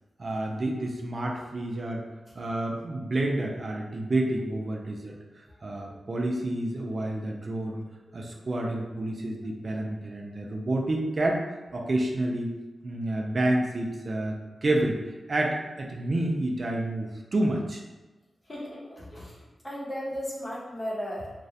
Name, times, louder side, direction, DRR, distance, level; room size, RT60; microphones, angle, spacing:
voice 1, 0.2-2.1 2.4-5.2 5.6-7.8 8.1-11.4 11.7-12.5 12.8-14.4 14.6-15.0 15.3-17.8, right 1 dB, 50° right, 0 dB, 0.3 m, -29 dB
voice 2, 18.5-21.3, equal, 35° left, -5 dB, 0.7 m, -36 dB
2.3 x 2.0 x 2.6 m, 1.1 s
cardioid pair, 70°, 0 cm